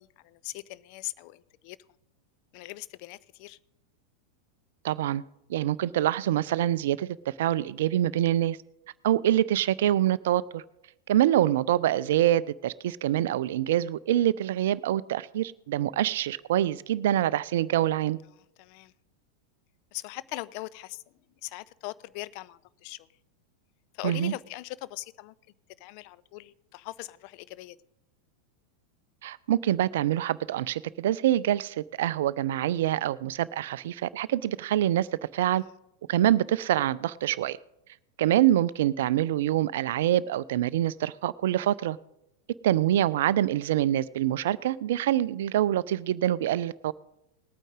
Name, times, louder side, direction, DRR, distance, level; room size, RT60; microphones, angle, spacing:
voice 1, 0.0-1.8 2.5-3.6 18.6-18.9 19.9-21.0 21.4-23.1 23.9-25.3 25.8-27.8 35.5-35.7, left 18 dB, 45° left, 18 dB, 0.4 m, -40 dB
voice 2, 4.8-5.2 5.5-8.6 9.0-10.6 11.1-18.2 24.0-24.3 29.2-35.1 35.3-35.6 36.1-37.6 38.2-42.0 42.6-46.9, right 12 dB, 55° right, 20 dB, 0.3 m, -25 dB
19.5 x 9.0 x 3.7 m, 0.87 s
figure-of-eight pair, 90°, 0 cm